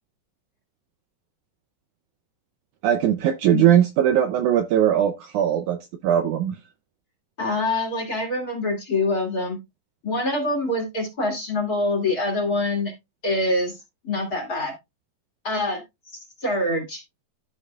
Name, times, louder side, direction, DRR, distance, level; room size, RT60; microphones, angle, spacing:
voice 1, 2.8-6.6, right 10 dB, 75° right, 1.9 m, -20 dB
voice 2, 7.4-9.6 10.0-12.9 13.2-13.8 14.0-14.7 15.4-15.8 16.4-17.0, left 2 dB, 30° left, 2.8 m, -25 dB
14.0 x 5.6 x 2.3 m
omnidirectional pair, 4.0 m